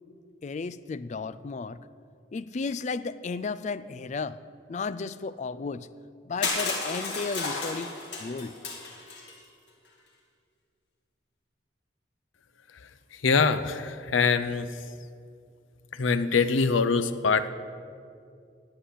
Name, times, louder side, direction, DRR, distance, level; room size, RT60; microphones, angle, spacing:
voice 1, 0.4-1.8 2.3-4.4 4.7-5.9 6.3-7.9 8.2-8.6, left 4 dB, 40° left, 15 dB, 0.3 m, -33 dB
Crushing, 6.4-9.4, left 3 dB, 60° left, 2.4 m, -32 dB
voice 2, 13.2-14.7 16.0-17.5, left 5 dB, 90° left, 13 dB, 0.6 m, -24 dB
10.0 x 8.4 x 9.8 m, 2.4 s
head